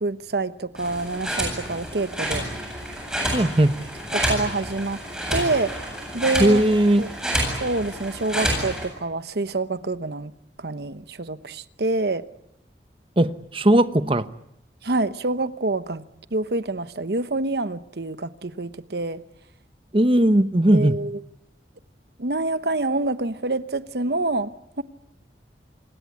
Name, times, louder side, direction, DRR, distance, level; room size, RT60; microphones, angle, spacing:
voice 1, 0.0-2.5 4.1-5.0 5.3-5.9 6.1-6.6 7.0-7.1 7.6-10.3 10.6-12.3 14.8-16.0 16.3-19.2 20.7-21.2 22.2-24.5 24.8-24.9, right 2 dB, 60° right, 1.0 m, -26 dB
sound 1, 0.8-8.9, right 1 dB, 5° right, 8.0 m, -29 dB
voice 2, 3.3-3.7 6.4-7.0 13.2-14.2 19.9-21.0, right 1 dB, 30° right, 1.0 m, -18 dB
27.0 x 21.0 x 9.6 m
head